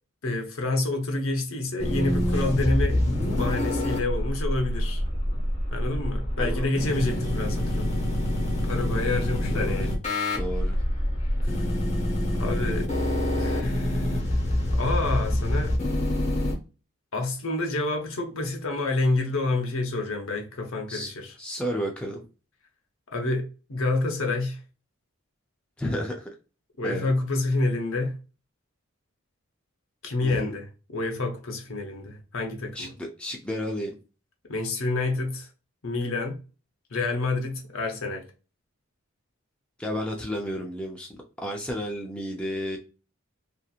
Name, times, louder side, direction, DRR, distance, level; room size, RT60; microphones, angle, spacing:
voice 1, 0.2-5.0 5.7-7.9 8.6-9.9 11.4-11.6 12.3-12.9 13.4-14.2 14.7-15.8 17.1-21.3 23.1-24.6 26.8-28.1 30.0-30.7 30.9-32.9 34.5-35.5 35.8-36.4 36.9-38.2, left 2 dB, 70° left, 0.7 m, -28 dB
sound 1, 1.8-16.5, left 1 dB, 30° left, 0.7 m, -26 dB
voice 2, 6.4-6.7 9.5-9.9 10.3-10.8 20.9-21.1 21.4-22.2 25.8-26.3 26.8-27.1 30.2-30.5 32.7-34.0 39.8-42.8, equal, 5° left, 0.4 m, -32 dB
2.8 x 2.5 x 2.3 m
head